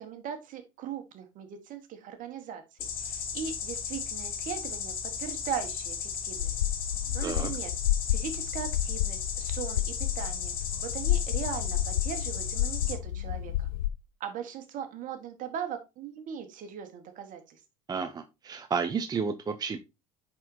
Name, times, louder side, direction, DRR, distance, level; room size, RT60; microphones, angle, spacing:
voice 1, 0.0-6.5 7.1-7.7 8.1-10.5 10.8-13.7 14.2-17.6, right 8 dB, 50° right, 1.6 m, -39 dB
sound 1, 2.8-12.9, left 6 dB, 50° left, 2.1 m, -35 dB
sound 2, 6.4-13.9, left 13 dB, 75° left, 0.4 m, -31 dB
voice 2, 17.9-19.8, right 5 dB, 20° right, 0.6 m, -31 dB
9.8 x 4.3 x 2.8 m
hypercardioid pair, 75°, 18 cm